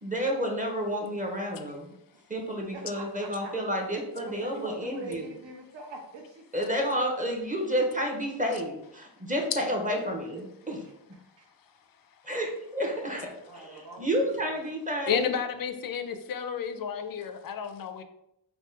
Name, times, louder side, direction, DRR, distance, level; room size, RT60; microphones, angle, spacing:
voice 1, 0.0-1.9 2.3-5.3 6.5-10.8 12.2-15.3, equal, 20° right, 1 dB, 0.7 m, -30 dB
voice 2, 2.7-3.5 4.2-6.8 10.0-10.1 10.3-10.7 11.1-11.5 13.4-14.7, right 3 dB, 75° right, 1 dB, 1.1 m, -44 dB
voice 3, 15.1-18.0, left 7 dB, 55° left, 9 dB, 0.5 m, -31 dB
3.5 x 2.6 x 4.4 m, 0.80 s
wide cardioid pair, 135°, 44 cm